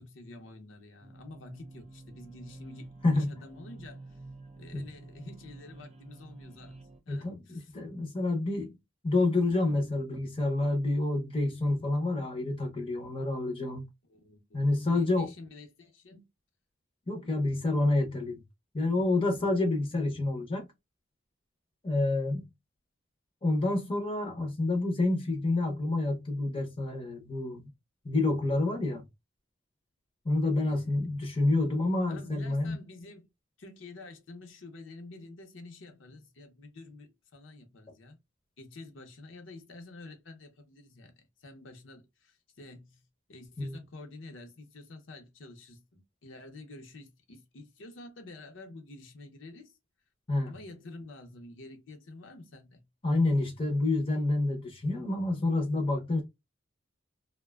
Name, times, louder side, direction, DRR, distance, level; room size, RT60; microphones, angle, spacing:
voice 1, 0.0-4.2 4.6-7.7 9.7-9.8 14.1-16.3 30.6-31.0 32.1-33.3 33.6-38.2 38.6-43.0 43.3-49.7 50.4-52.9, left 2 dB, 70° left, 0.7 m, -49 dB
sound 1, 1.0-7.0, right 2 dB, 35° right, 0.4 m, -49 dB
voice 2, 7.1-8.7 9.0-13.9 14.5-15.3 17.1-18.4 18.7-20.7 21.8-22.4 23.4-27.7 28.0-29.1 30.2-32.8 43.6-43.8 50.3-50.5 53.0-56.2, left 2 dB, 25° left, 0.6 m, -28 dB
2.5 x 2.2 x 2.2 m
head